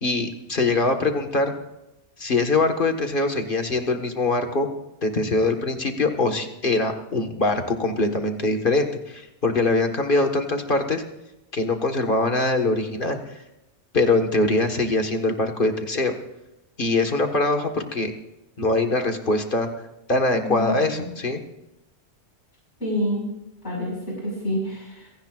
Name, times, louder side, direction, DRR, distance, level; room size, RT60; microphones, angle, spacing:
voice 1, 0.0-1.5 2.2-4.7 5.0-11.0 11.5-13.4 13.9-16.2 16.8-18.1 18.6-19.7 20.1-21.4, left 2 dB, 45° left, 5 dB, 1.8 m, -23 dB
voice 2, 20.3-21.0 22.8-23.2 23.6-25.1, left 1 dB, 65° left, -3 dB, 5.9 m, -28 dB
26.5 x 17.0 x 2.5 m, 0.92 s
omnidirectional pair, 1.2 m